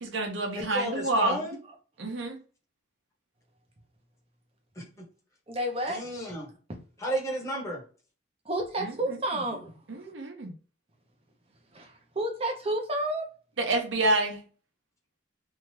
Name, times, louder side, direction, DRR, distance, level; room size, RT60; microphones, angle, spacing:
voice 1, 0.0-1.4 2.0-2.4 8.8-8.9 9.9-10.5 13.6-14.4, right 2 dB, 80° right, 0.9 m, -28 dB
voice 2, 0.5-1.6 4.8-4.9 5.9-6.5 7.0-7.8, equal, 15° left, 0.9 m, -32 dB
voice 3, 5.5-6.1 6.7-6.8 8.4-9.8 11.7-13.3, right 1 dB, 30° right, 0.7 m, -31 dB
2.8 x 2.3 x 3.1 m
head